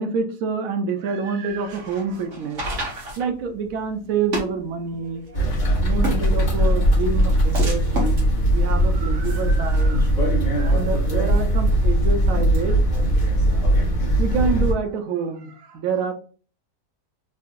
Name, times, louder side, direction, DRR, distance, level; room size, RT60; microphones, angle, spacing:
voice 1, 0.0-2.8 3.2-5.4 5.8-8.2 8.5-10.1 10.5-12.8 14.2-16.1, right 5 dB, 70° right, 6 dB, 0.9 m, -27 dB
sound 1, 1.5-9.8, right 1 dB, 55° right, 1.4 m, -33 dB
sound 2, 5.3-14.7, right 1 dB, 35° left, 1.1 m, -19 dB
3.8 x 2.5 x 2.4 m, 0.40 s
omnidirectional pair, 1.7 m